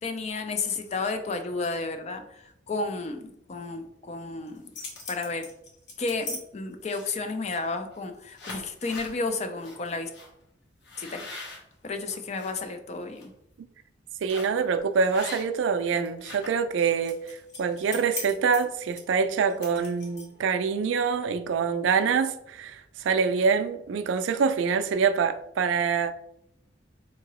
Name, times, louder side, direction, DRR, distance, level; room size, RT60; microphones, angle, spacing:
voice 1, 0.0-4.7 5.1-5.5 6.0-10.1 11.0-11.3 11.8-13.3, left 3 dB, 35° left, 0.3 m, -32 dB
sound 1, 4.5-6.4 6.8-7.3 7.9-8.1 8.3-9.1 9.6-9.8 10.1-10.3 10.8-12.5 13.0-13.2 14.3-14.6 15.1-15.7 16.0-20.5, left 3 dB, 65° left, 0.9 m, -40 dB
voice 2, 14.2-26.1, right 5 dB, 80° right, 0.3 m, -25 dB
3.6 x 2.8 x 2.9 m
head